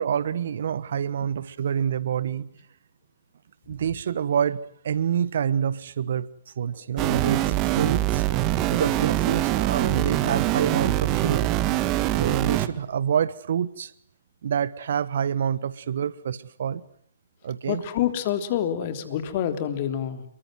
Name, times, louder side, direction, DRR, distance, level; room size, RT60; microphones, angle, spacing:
voice 1, 0.0-2.5 3.7-6.3 6.6-8.2 8.7-11.5 12.2-13.9 14.4-16.8 17.4-17.8, right 8 dB, 60° right, 1.2 m, -27 dB
sound 1, 7.0-12.7, right 14 dB, 30° right, 1.7 m, -24 dB
voice 2, 17.7-20.2, left 10 dB, 45° left, 3.5 m, -27 dB
28.0 x 23.0 x 7.8 m
figure-of-eight pair, 125°, 0 cm